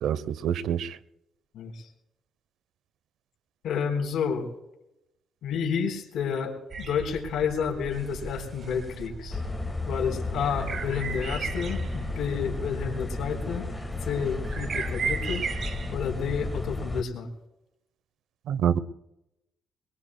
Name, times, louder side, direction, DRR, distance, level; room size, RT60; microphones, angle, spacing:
voice 1, 0.0-1.0 18.5-18.8, right 9 dB, 80° right, 17 dB, 0.7 m, -26 dB
voice 2, 1.5-1.9 3.6-4.5 5.4-9.4 9.9-13.7 14.0-15.4 15.9-17.3, left 7 dB, 75° left, 3 dB, 4.0 m, -30 dB
sound 1, 6.7-16.0, right 5 dB, 50° right, 1.2 m, -37 dB
sound 2, 8.1-8.4 8.9-9.0 9.3-17.0, left 2 dB, 15° left, 1.4 m, -33 dB
23.5 x 22.5 x 2.2 m, 0.89 s
cardioid pair, 90°, 0 cm